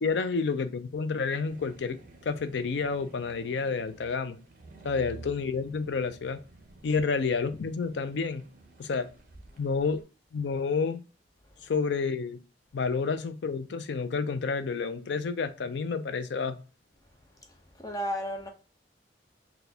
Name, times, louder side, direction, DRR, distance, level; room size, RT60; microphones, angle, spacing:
voice 1, 0.0-2.0 2.3-4.4 4.8-6.4 6.8-8.4 8.8-9.1 9.6-10.0 10.3-11.0 11.6-12.4 12.7-16.6, left 5 dB, 75° left, 0.4 m, -29 dB
sound 1, 1.5-10.0, right 2 dB, 50° right, 0.6 m, -51 dB
voice 2, 17.7-18.5, equal, 20° left, 0.7 m, -33 dB
4.0 x 2.2 x 2.7 m
head